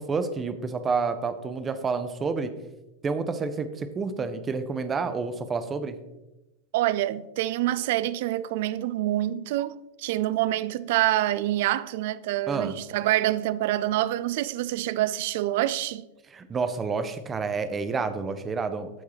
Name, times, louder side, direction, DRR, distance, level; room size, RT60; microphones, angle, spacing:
voice 1, 0.0-2.5 3.0-5.9 12.5-12.7 16.3-18.9, right 4 dB, 20° right, 0.6 m, -29 dB
voice 2, 6.7-16.0, right 14 dB, 50° right, 0.3 m, -26 dB
13.5 x 4.7 x 3.0 m
figure-of-eight pair, 90°, 0 cm